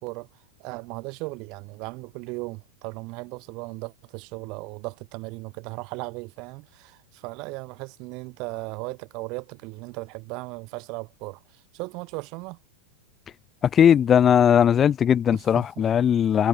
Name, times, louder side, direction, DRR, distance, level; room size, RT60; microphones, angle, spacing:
voice 1, 0.6-12.6 15.3-15.9, right 27 dB, 40° right, 0.9 m, -37 dB
voice 2, 13.7-16.5, left 8 dB, 25° left, 0.4 m, -18 dB
figure-of-eight pair, 90°, 0 cm